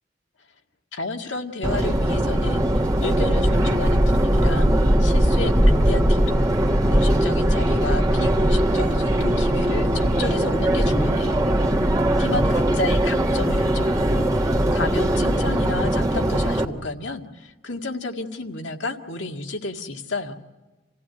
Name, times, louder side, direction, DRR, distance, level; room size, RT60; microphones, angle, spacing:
voice 1, 0.9-2.7 3.0-6.5 6.9-11.4 12.2-20.3, left 2 dB, 90° left, 3 dB, 1.9 m, -31 dB
Subway metro underground, 1.6-16.6, right 1 dB, 20° right, 1.6 m, -20 dB
28.0 x 16.0 x 9.5 m, 1.2 s
head